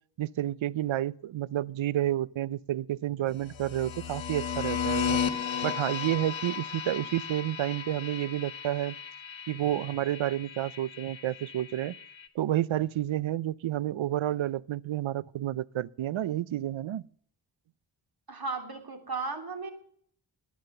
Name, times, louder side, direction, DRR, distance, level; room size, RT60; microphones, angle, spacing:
voice 1, 0.2-5.2 5.6-8.9 9.5-12.0 12.4-17.1, right 13 dB, 85° right, 0.6 m, -30 dB
sound 1, 3.5-12.3, left 7 dB, 85° left, 1.5 m, -35 dB
voice 2, 18.3-19.7, right 4 dB, 50° right, 3.2 m, -35 dB
19.5 x 9.6 x 6.7 m
wide cardioid pair, 65°, 45 cm